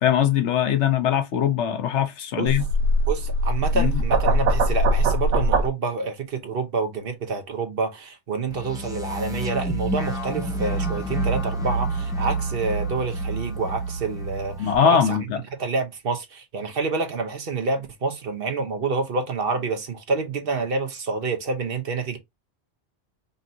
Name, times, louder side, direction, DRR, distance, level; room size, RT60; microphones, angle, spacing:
voice 1, 0.0-2.6 3.7-3.9 14.6-15.4, left 9 dB, 80° left, 1.1 m, -21 dB
sound 1, 2.5-5.7, right 1 dB, 80° right, 1.2 m, -21 dB
voice 2, 3.1-15.2 15.6-22.2, right 4 dB, 55° right, 1.0 m, -28 dB
sound 2, 8.5-14.7, right 2 dB, 5° right, 0.9 m, -28 dB
5.3 x 2.7 x 2.7 m
omnidirectional pair, 1.2 m